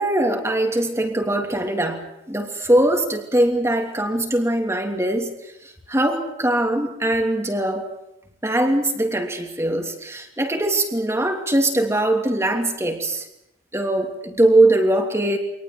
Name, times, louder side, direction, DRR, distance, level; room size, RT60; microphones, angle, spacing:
voice 1, 0.0-5.3 5.9-7.8 8.4-13.2 13.7-15.4, right 1 dB, 15° right, 3 dB, 3.0 m, -21 dB
26.0 x 19.5 x 7.8 m, 0.83 s
head